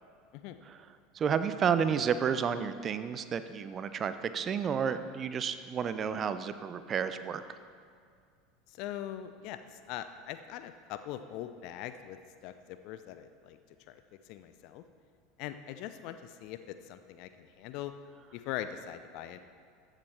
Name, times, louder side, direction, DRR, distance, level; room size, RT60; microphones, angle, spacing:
voice 1, 1.1-7.6, right 7 dB, 30° right, 12 dB, 0.5 m, -31 dB
voice 2, 8.7-12.2 12.4-13.6 13.9-14.0 14.3-14.8 15.4-17.9 18.3-19.4, left 11 dB, 50° left, 10 dB, 0.4 m, -41 dB
14.0 x 7.3 x 3.3 m, 2.1 s
figure-of-eight pair, 75°, 0 cm